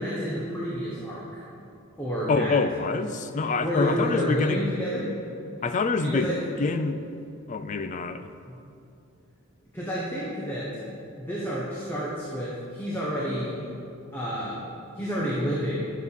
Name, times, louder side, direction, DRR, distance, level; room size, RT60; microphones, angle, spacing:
voice 1, 0.0-1.4 2.0-2.6 2.9-3.0 3.6-5.1 6.0-6.4 8.4-8.6 9.7-10.8 11.2-13.7 14.1-15.9, equal, 10° left, -7 dB, 1.1 m, -30 dB
voice 2, 2.3-4.7 5.6-6.3 6.6-7.0 7.5-8.3, left 4 dB, 35° left, 10 dB, 0.4 m, -26 dB
11.0 x 7.2 x 4.1 m, 2.6 s
head